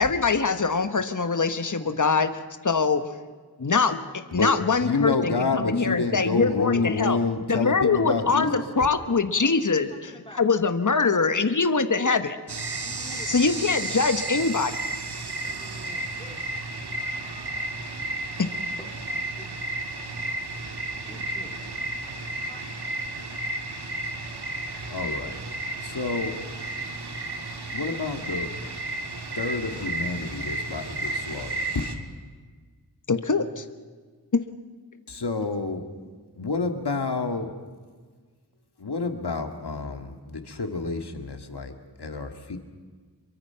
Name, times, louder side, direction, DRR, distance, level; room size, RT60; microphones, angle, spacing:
voice 1, 0.0-2.3 2.6-3.0 3.6-7.2 7.5-10.1 10.4-12.4 13.3-14.7 18.4-18.5 33.1-33.6 34.3-34.4, left 4 dB, 50° left, 9 dB, 1.3 m, -23 dB
voice 2, 1.7-2.1 6.3-7.5 8.8-10.5 10.8-11.5 12.0-12.1 12.8-16.4 18.8-19.5 21.0-21.7 22.5-22.6, equal, 15° left, 2 dB, 4.0 m, -48 dB
voice 3, 4.8-8.6 24.9-25.4 25.8-26.3 27.7-28.5 29.4-31.6 35.1-35.9 36.4-37.5 38.8-41.7 42.0-42.6, left 3 dB, 85° left, 6 dB, 2.1 m, -28 dB
sound 1, 12.5-31.9, right 2 dB, 85° right, 2.1 m, -33 dB
27.0 x 23.0 x 5.8 m, 1.5 s
wide cardioid pair, 55°, 39 cm